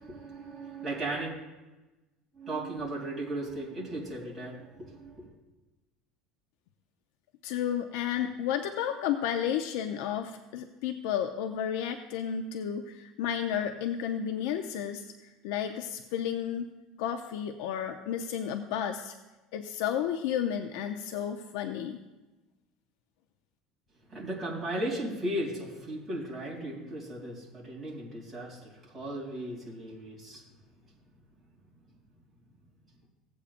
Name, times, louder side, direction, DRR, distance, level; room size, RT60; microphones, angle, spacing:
voice 1, 0.0-1.4 2.3-5.3 24.1-30.4, right 1 dB, 10° right, -5 dB, 3.0 m, -36 dB
voice 2, 7.4-16.7 17.0-19.2 19.5-22.0, left 9 dB, 80° left, 6 dB, 0.6 m, -32 dB
16.0 x 8.4 x 2.5 m, 1.1 s
cardioid pair, 150°, 0 cm